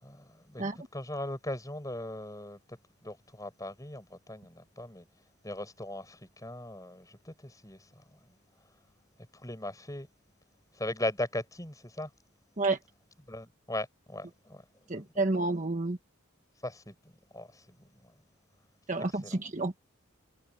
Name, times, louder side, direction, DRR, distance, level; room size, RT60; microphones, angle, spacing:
voice 1, 0.0-0.6 0.9-2.6 3.0-5.0 5.4-7.8 9.4-10.1 10.8-12.1 13.3-14.6 14.9-15.0 16.6-16.9 17.3-17.6 19.2-19.4, left 1 dB, 15° left, 6.5 m, -38 dB
voice 2, 14.9-16.0 18.9-19.8, right 2 dB, 35° right, 1.4 m, -30 dB
head